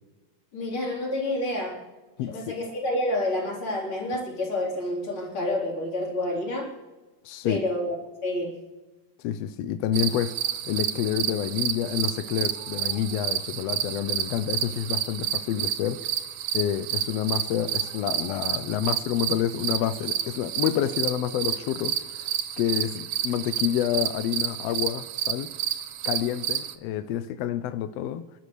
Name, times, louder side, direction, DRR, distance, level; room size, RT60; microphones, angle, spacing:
voice 1, 0.5-1.8 2.3-6.7 7.4-8.0 8.2-8.6, left 1 dB, 40° left, 4.7 m, -28 dB
voice 2, 2.2-2.6 7.2-7.6 9.2-10.4 10.7-16.0 16.5-25.5 26.0-28.2, left 10 dB, 80° left, 1.5 m, -28 dB
sound 1, 9.9-26.7, right 10 dB, 70° right, 1.5 m, -30 dB
30.0 x 12.5 x 3.3 m
omnidirectional pair, 3.5 m